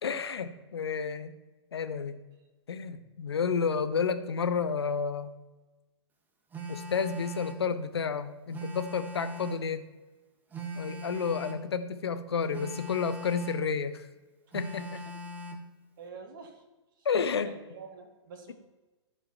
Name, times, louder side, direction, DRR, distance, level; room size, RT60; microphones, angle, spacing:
voice 1, 0.0-1.3 1.7-2.2 2.7-5.3 6.7-9.8 10.7-14.1 14.5-15.0 17.0-17.5, left 6 dB, 65° left, 12 dB, 0.8 m, -31 dB
Telephone, 6.5-7.7 8.5-9.7 10.5-11.7 12.5-13.7 14.5-15.7, equal, 10° right, 1.0 m, -40 dB
voice 2, 16.0-16.5 17.5-18.5, right 5 dB, 45° right, 5 dB, 1.8 m, -46 dB
13.5 x 4.9 x 4.4 m, 1.2 s
figure-of-eight pair, 115°, 15 cm